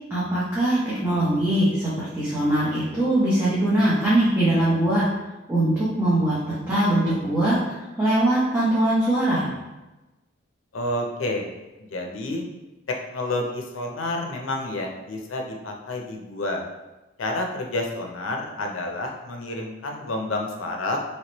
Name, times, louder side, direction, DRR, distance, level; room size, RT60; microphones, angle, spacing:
voice 1, 0.1-5.0 5.5-7.6 8.0-9.5, right 1 dB, 10° right, -10 dB, 0.7 m, -21 dB
voice 2, 10.7-11.5 11.9-12.4 13.1-16.6 17.2-21.0, left 2 dB, 75° left, 2 dB, 0.5 m, -29 dB
3.1 x 3.0 x 2.9 m, 1.1 s
head